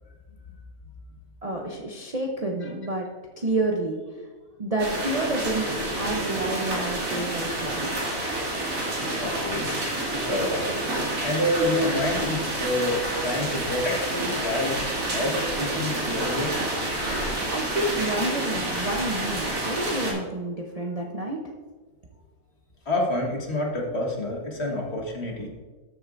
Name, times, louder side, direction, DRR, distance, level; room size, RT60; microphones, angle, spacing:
voice 1, 1.4-3.1 3.4-4.0 4.6-5.7 6.0-7.9 17.5-21.5, right 2 dB, 35° right, -1 dB, 0.7 m, -29 dB
sound 1, 4.8-20.1, right 1 dB, 70° right, 2.7 m, -29 dB
voice 2, 9.2-9.7 10.1-10.7 11.2-14.8 15.1-16.5 22.8-25.5, left 1 dB, 45° left, 0 dB, 1.7 m, -28 dB
13.0 x 7.7 x 2.6 m, 1.3 s
omnidirectional pair, 1.6 m